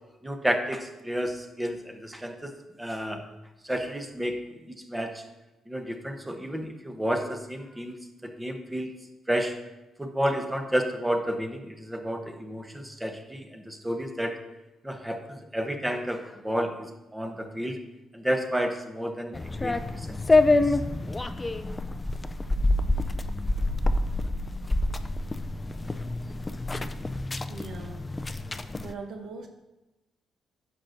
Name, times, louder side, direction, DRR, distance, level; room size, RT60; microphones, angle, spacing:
voice 1, 0.2-2.5 2.8-3.2 3.6-4.4 4.9-5.2 5.7-8.0 8.2-8.9 9.3-9.6 10.0-14.4 14.8-17.8 18.1-19.3 19.6-20.8, equal, 10° right, 5 dB, 0.9 m, -31 dB
sound 1, 19.3-28.9, left 2 dB, 20° left, 0.4 m, -27 dB
voice 2, 27.5-28.0 28.8-29.5, right 4 dB, 65° right, 4 dB, 0.9 m, -40 dB
10.0 x 6.4 x 2.7 m, 1.0 s
cardioid pair, 90°, 0 cm